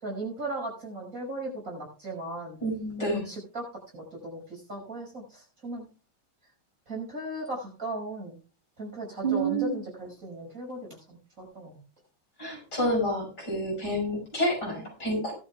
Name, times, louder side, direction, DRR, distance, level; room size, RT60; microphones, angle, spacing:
voice 1, 0.0-2.6 3.2-3.6 3.9-5.9 6.9-8.4 8.8-11.8, right 2 dB, 35° right, -1 dB, 5.9 m, -37 dB
voice 2, 2.6-3.2 9.2-9.7 12.4-15.3, right 1 dB, 50° left, -1 dB, 6.4 m, -28 dB
18.5 x 12.0 x 2.4 m, 0.36 s
omnidirectional pair, 2.4 m